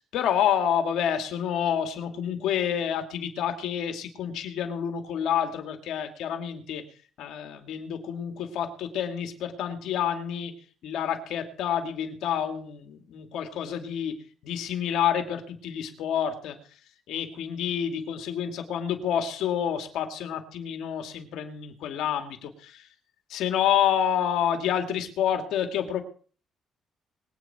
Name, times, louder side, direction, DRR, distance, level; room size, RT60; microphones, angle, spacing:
voice 1, 0.1-6.8 7.2-10.5 10.8-14.2 14.4-16.6 17.1-22.8 23.3-26.0, left 9 dB, 80° left, 5 dB, 2.6 m, -28 dB
23.0 x 9.0 x 4.5 m, 0.42 s
cardioid pair, 95°, 0 cm